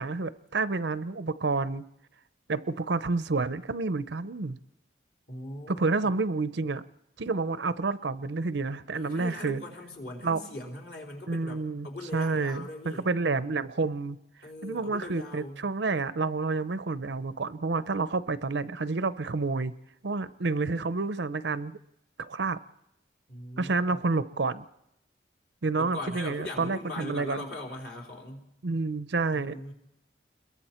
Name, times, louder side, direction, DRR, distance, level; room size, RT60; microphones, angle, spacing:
voice 1, 0.0-1.8 2.5-4.6 5.7-6.8 7.2-9.6 10.2-10.4 11.3-14.2 14.6-19.7 20.0-21.8 22.2-22.6 23.6-24.6 25.6-27.4 28.6-29.6, right 3 dB, 70° right, 14 dB, 0.7 m, -29 dB
voice 2, 5.3-6.1 8.9-13.1 14.4-15.6 23.3-24.0 25.8-28.5 29.3-29.7, left 1 dB, 55° left, 0 dB, 3.8 m, -40 dB
28.0 x 22.0 x 4.4 m, 0.79 s
head